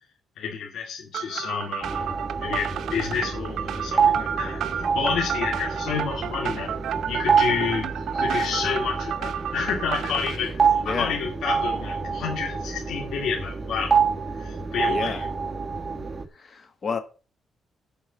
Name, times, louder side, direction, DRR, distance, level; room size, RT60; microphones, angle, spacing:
voice 1, 0.4-2.1 2.4-4.6 4.9-6.7 7.1-13.9 14.4-15.3, left 6 dB, 85° left, 2.3 m, -29 dB
sound 1, 1.1-10.4, right 9 dB, 75° right, 0.6 m, -32 dB
sound 2, 1.8-16.3, right 5 dB, 25° right, 1.5 m, -27 dB
voice 2, 10.8-11.2 14.9-15.2 16.3-17.0, left 5 dB, 40° left, 1.7 m, -31 dB
8.6 x 5.5 x 7.1 m
cardioid pair, 120°, 0 cm